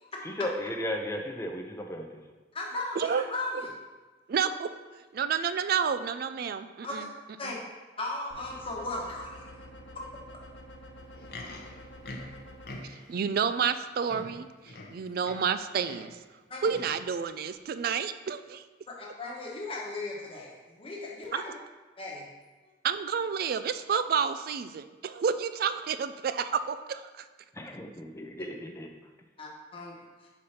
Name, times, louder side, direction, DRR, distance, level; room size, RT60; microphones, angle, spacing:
voice 1, 0.2-2.2 27.5-28.9, left 1 dB, 15° left, 3 dB, 0.6 m, -35 dB
voice 2, 2.5-3.7 6.8-7.1 7.4-7.6 8.0-9.5 9.9-10.0 16.5-16.7 18.9-21.6 22.0-22.3 29.4-29.9, left 2 dB, 30° left, -2 dB, 1.1 m, -37 dB
voice 3, 4.3-4.7 5.1-7.1 7.4-7.6 12.8-16.2 16.6-18.6 21.3-21.4 22.8-27.2, right 6 dB, 50° right, 11 dB, 0.3 m, -30 dB
sound 1, 8.3-12.7, equal, 85° left, 0.9 m, -48 dB
Livestock farm animals working animals, 11.0-13.2 13.8-13.9 14.1-15.6 15.8-16.2 16.7-17.0 17.7-17.8, left 2 dB, 55° left, 0.8 m, -44 dB
5.5 x 5.0 x 4.3 m, 1.3 s
head